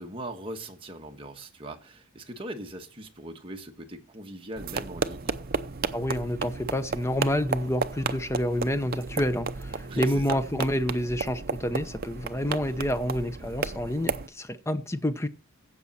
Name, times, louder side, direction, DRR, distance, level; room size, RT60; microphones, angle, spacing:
voice 1, 0.0-5.4 9.9-10.4, right 1 dB, 25° right, 1.4 m, -40 dB
sound 1, 4.6-14.3, right 4 dB, 45° right, 0.6 m, -33 dB
voice 2, 5.9-15.3, equal, 10° left, 0.7 m, -28 dB
15.5 x 6.2 x 4.3 m
head